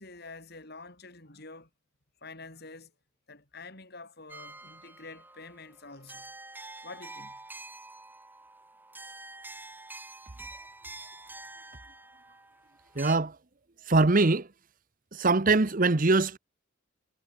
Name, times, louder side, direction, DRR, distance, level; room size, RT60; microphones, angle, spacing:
voice 1, 0.0-1.7 2.2-2.9 3.3-6.3 6.8-7.4 8.9-9.0 11.9-12.1 12.9-13.0, left 3 dB, 50° left, 5.4 m, -47 dB
sound 1, 4.3-13.2, right 2 dB, 10° right, 1.8 m, -47 dB
voice 2, 13.0-13.3 13.9-14.5 15.1-16.4, right 3 dB, 40° right, 0.9 m, -22 dB
head